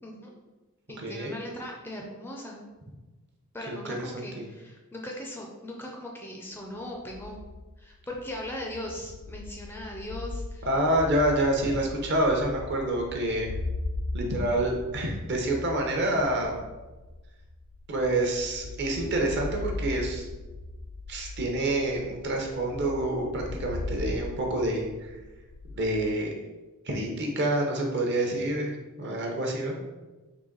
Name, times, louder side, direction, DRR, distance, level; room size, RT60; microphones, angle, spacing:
voice 1, 0.0-0.3 0.9-2.7 3.5-7.4 7.8-10.7, left 1 dB, 10° left, -1 dB, 0.4 m, -39 dB
voice 2, 1.0-1.3 3.7-4.4 10.7-13.5 14.1-16.6 17.9-20.3 21.1-25.1 25.7-26.3 26.8-28.7 29.0-29.8, right 1 dB, 50° right, 1 dB, 0.8 m, -27 dB
sound 1, 6.9-26.0, left 2 dB, 75° left, 0.4 m, -38 dB
3.9 x 2.9 x 3.8 m, 1.2 s
head